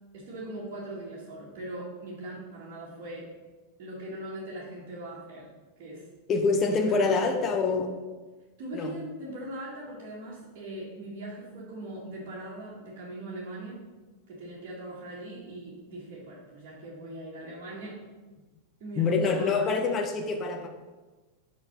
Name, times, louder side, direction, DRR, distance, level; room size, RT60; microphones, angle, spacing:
voice 1, 0.1-3.3 3.8-5.5 5.8-6.1 6.8-7.4 8.6-13.8 14.3-18.0 18.8-19.8, right 1 dB, 45° right, -6 dB, 1.8 m, -40 dB
voice 2, 6.3-7.9 8.7-9.0 19.0-20.7, left 4 dB, 25° left, 4 dB, 0.8 m, -25 dB
5.8 x 5.2 x 5.5 m, 1.2 s
figure-of-eight pair, 90°, 0 cm